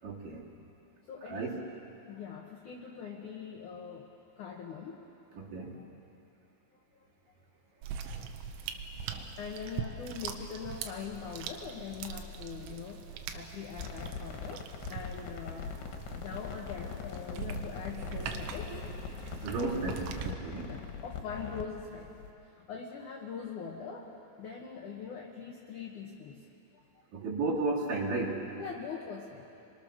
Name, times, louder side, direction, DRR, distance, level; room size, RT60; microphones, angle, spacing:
voice 1, 0.0-0.5 1.2-1.6 5.3-5.8 18.7-18.8 19.4-20.7 27.1-28.5, right 3 dB, 50° right, -4 dB, 3.4 m, -34 dB
voice 2, 1.1-1.7 2.1-4.1 4.4-5.0 5.4-5.5 7.0-7.1 9.1-18.8 20.6-22.1 22.5-26.5 26.7-26.8 28.6-29.5, left 6 dB, 85° left, 0 dB, 1.7 m, -42 dB
sound 1, 7.8-20.3, right 7 dB, 85° right, 3.8 m, -42 dB
sound 2, 13.7-22.3, left 6 dB, 70° left, 3.4 m, -42 dB
30.0 x 22.5 x 6.6 m, 2.8 s
omnidirectional pair, 5.9 m